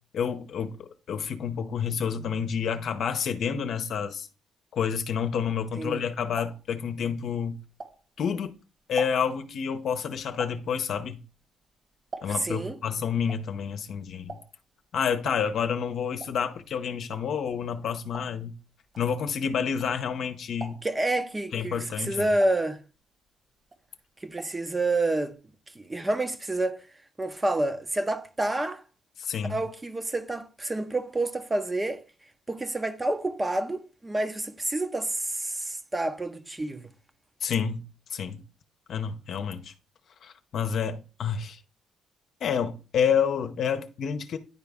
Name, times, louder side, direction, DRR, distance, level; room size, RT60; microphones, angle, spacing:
voice 1, 0.1-4.3 4.7-7.6 8.2-8.5 8.9-11.2 12.2-14.4 14.9-18.5 19.0-20.8 21.5-22.3 29.2-29.6 37.4-37.8 38.1-38.4 38.9-39.7 40.2-41.6 42.4-44.4, left 7 dB, 65° left, 0.8 m, -29 dB
voice 2, 5.8-6.1 12.3-12.8 20.8-22.8 24.2-25.4 25.7-26.8 27.2-28.8 29.5-32.0 32.5-36.9, right 2 dB, 20° right, 0.8 m, -28 dB
sound 1, 6.3-8.4 8.7-12.7 12.9-20.2 20.5-21.1 21.6-23.3 23.6-24.7 24.9-25.0 25.3-25.4, right 3 dB, 40° right, 1.7 m, -45 dB
10.0 x 3.9 x 3.6 m
cardioid pair, 90°, 0 cm